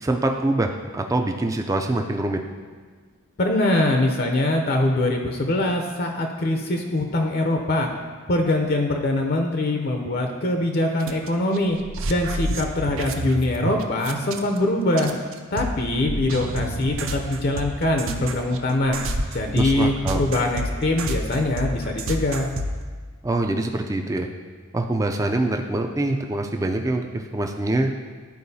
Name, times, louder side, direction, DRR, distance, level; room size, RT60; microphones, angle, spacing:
voice 1, 0.0-2.4 19.5-20.2 23.2-24.3 24.7-27.9, right 2 dB, 15° right, 4 dB, 0.3 m, -24 dB
voice 2, 3.4-7.9 8.3-11.8 12.1-15.1 15.5-19.0 19.3-22.5, left 1 dB, 45° left, 3 dB, 0.5 m, -23 dB
sound 1, 11.0-11.3 11.5-14.6 15.0-22.8, right 1 dB, 65° right, 0.6 m, -29 dB
11.5 x 4.6 x 2.7 m, 1.5 s
head